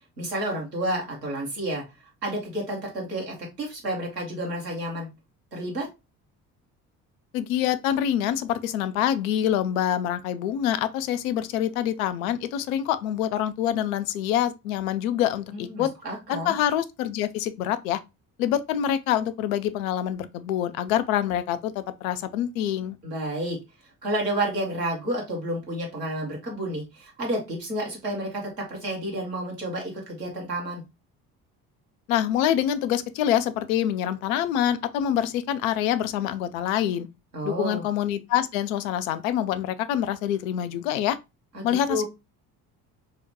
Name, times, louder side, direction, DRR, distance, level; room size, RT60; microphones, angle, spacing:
voice 1, 0.2-1.8 2.2-5.1 5.5-5.9 15.5-16.5 23.0-23.6 24.0-30.8 37.3-37.8 41.5-42.0, right 1 dB, 85° right, 1.0 m, -30 dB
voice 2, 7.3-15.9 16.3-18.0 18.4-23.0 32.1-37.1 37.4-41.2 41.6-42.0, left 10 dB, 60° left, 0.5 m, -26 dB
4.8 x 2.1 x 2.7 m
figure-of-eight pair, 55°, 47 cm